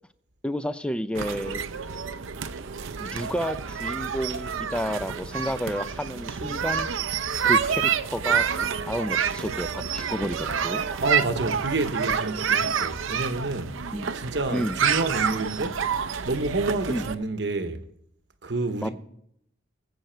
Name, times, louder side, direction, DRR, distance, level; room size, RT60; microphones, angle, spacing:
voice 1, 0.4-1.6 3.0-6.9 7.4-11.0 13.9-14.1 14.5-14.8 16.9-17.0 18.8-18.9, equal, 5° left, 0.4 m, -31 dB
sound 1, 1.1-17.1, right 7 dB, 80° right, 0.6 m, -28 dB
voice 2, 11.0-15.8 16.3-17.8 18.4-18.9, right 2 dB, 60° right, 1.0 m, -29 dB
20.5 x 8.0 x 4.5 m
head